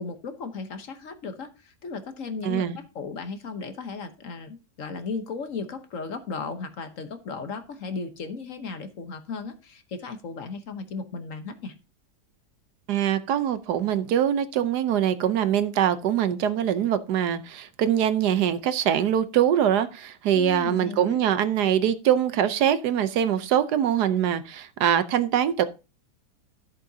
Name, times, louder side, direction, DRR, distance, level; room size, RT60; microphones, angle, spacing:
voice 1, 0.0-11.7 20.3-21.2, left 4 dB, 55° left, 1.2 m, -35 dB
voice 2, 2.4-2.8 12.9-25.7, right 9 dB, 75° right, 1.3 m, -23 dB
13.5 x 7.6 x 2.7 m
omnidirectional pair, 1.8 m